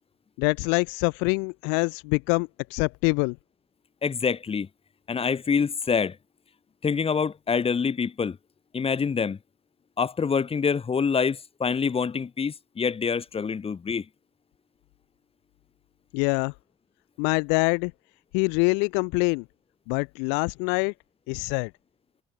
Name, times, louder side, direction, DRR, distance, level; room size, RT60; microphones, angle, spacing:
voice 1, 0.4-3.4 16.1-16.5 17.2-17.9 18.3-19.4 19.9-20.9 21.3-21.7, left 35 dB, 65° left, 0.9 m, -25 dB
voice 2, 4.0-4.7 5.1-6.2 6.8-8.4 8.7-9.4 10.0-14.0, left 6 dB, 30° left, 1.5 m, -26 dB
figure-of-eight pair, 50°, 20 cm